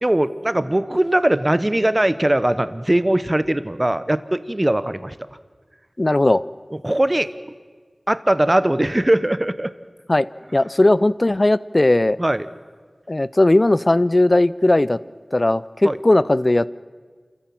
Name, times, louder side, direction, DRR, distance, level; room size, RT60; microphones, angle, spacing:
voice 1, 0.0-5.3 6.8-7.3 8.1-9.7 12.2-12.5 15.8-16.0, right 1 dB, 30° right, 14 dB, 1.0 m, -20 dB
voice 2, 6.0-6.4 10.1-10.3 10.5-12.2 13.1-15.0 15.3-16.7, left 1 dB, 45° left, 18 dB, 0.6 m, -17 dB
28.5 x 14.5 x 7.6 m, 1.5 s
wide cardioid pair, 40°, 0 cm